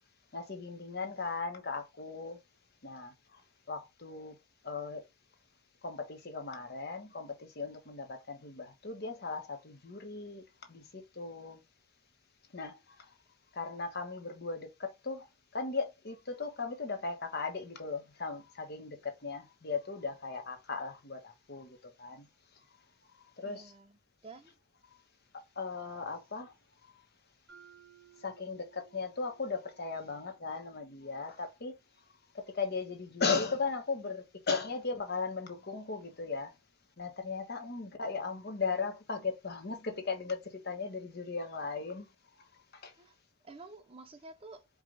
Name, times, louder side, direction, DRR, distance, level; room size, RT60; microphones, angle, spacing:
voice 1, 0.3-2.4 2.8-3.1 3.7-4.3 4.6-5.0 5.8-10.4 10.7-11.6 12.5-13.1 13.5-15.3 15.5-22.2 23.4-23.7 25.6-26.5 28.2-31.7 32.3-36.5 37.0-42.1 42.4-42.5 42.8-42.9, left 4 dB, 50° left, 1.0 m, -37 dB
voice 2, 23.4-24.0 24.2-24.6 42.9-43.2 43.4-44.7, right 3 dB, 25° right, 0.5 m, -50 dB
Mallet percussion, 27.5-31.5, right 8 dB, 70° right, 1.9 m, -61 dB
4.8 x 2.4 x 3.8 m
head